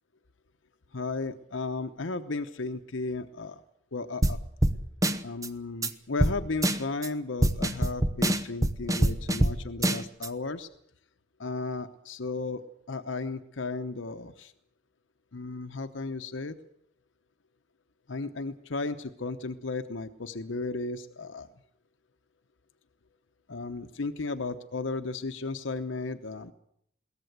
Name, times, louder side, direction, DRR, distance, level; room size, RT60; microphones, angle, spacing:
voice 1, 0.9-3.6 3.9-4.4 5.2-10.7 11.4-14.5 15.3-16.6 18.1-21.5 23.5-26.5, left 3 dB, 85° left, 8 dB, 0.9 m, -34 dB
sound 1, 4.2-4.4 4.6-4.8 5.0-5.5 5.8-5.9 6.2-6.3 6.6-7.1 7.4-9.5 9.8-10.3, right 1 dB, 20° right, 0.9 m, -24 dB
22.0 x 17.5 x 8.0 m, 0.71 s
head